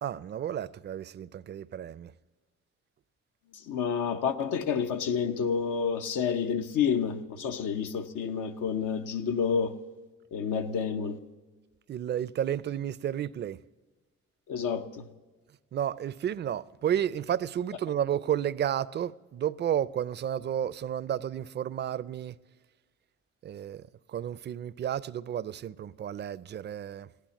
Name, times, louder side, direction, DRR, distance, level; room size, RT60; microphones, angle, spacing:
voice 1, 0.0-2.1 11.9-13.6 15.7-22.3 23.4-23.8 24.1-27.1, right 10 dB, 35° right, 0.4 m, -32 dB
voice 2, 3.7-9.8 10.3-11.2 14.5-15.1, left 6 dB, 85° left, 0.9 m, -29 dB
15.0 x 11.5 x 7.1 m
cardioid pair, 90°, 30 cm